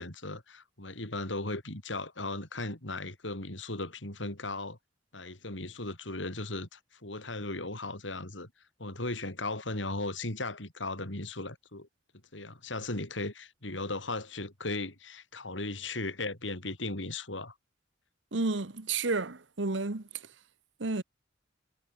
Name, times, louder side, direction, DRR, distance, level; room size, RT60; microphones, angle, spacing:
voice 1, 0.0-4.8 5.1-8.5 8.8-11.9 12.3-17.5, left 2 dB, 85° left, 5.8 m, -37 dB
voice 2, 18.3-20.0 20.8-21.0, right 3 dB, 80° right, 1.4 m, -31 dB
head